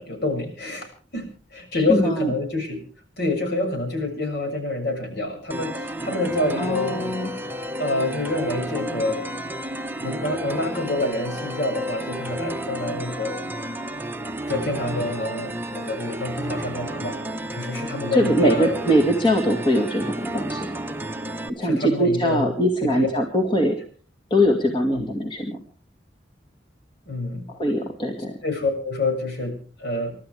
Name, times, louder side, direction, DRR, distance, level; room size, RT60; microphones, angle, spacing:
voice 1, 0.0-2.8 3.2-7.0 7.8-9.2 10.0-13.3 14.4-17.2 17.5-18.8 21.6-22.5 22.8-23.1 24.9-25.0 27.0-27.5 28.4-30.2, left 2 dB, 60° left, 4 dB, 6.6 m, -27 dB
voice 2, 1.7-2.3 6.6-7.3 18.1-20.8 21.5-23.8 24.3-25.6 27.5-28.4, equal, 25° left, 3 dB, 2.2 m, -22 dB
sound 1, 5.5-21.5, right 1 dB, 10° right, 0.9 m, -32 dB
29.0 x 13.0 x 3.4 m, 0.42 s
head